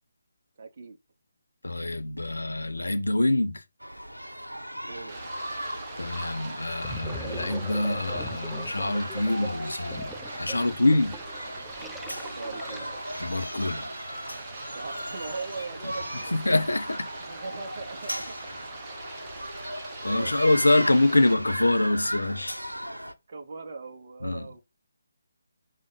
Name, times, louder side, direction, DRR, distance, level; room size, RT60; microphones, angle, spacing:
voice 1, 0.6-1.0 4.9-5.2 12.3-12.9 14.7-16.5 17.2-18.3 20.0-20.4 23.3-24.6, right 4 dB, 40° right, 1.2 m, -39 dB
voice 2, 1.6-3.6 6.0-10.1 10.4-11.2 13.2-13.9 15.8-15.9 16.3-17.1 20.0-22.6 24.2-24.5, left 2 dB, 70° left, 0.9 m, -25 dB
sound 1, 3.8-23.1, equal, 85° right, 0.8 m, -37 dB
Stream, 5.1-21.3, right 3 dB, 20° right, 1.2 m, -44 dB
Gurgling, 6.1-6.3 6.7-13.2, right 1 dB, ahead, 0.3 m, -42 dB
5.5 x 3.3 x 5.0 m
figure-of-eight pair, 145°, 0 cm